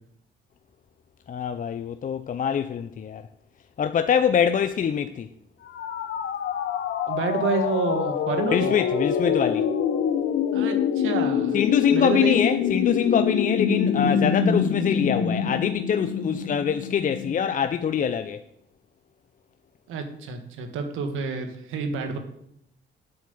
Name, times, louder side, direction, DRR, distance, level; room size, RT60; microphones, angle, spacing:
voice 1, 1.3-3.2 3.8-5.3 8.5-9.7 11.5-18.4, left 8 dB, 40° left, 0.6 m, -24 dB
sound 1, 5.7-17.5, left 7 dB, 70° left, 0.9 m, -25 dB
voice 2, 7.1-8.7 10.5-11.6 11.9-12.4 19.9-22.2, right 5 dB, 85° right, 1.7 m, -29 dB
7.8 x 7.6 x 7.1 m
cardioid pair, 90°, 20 cm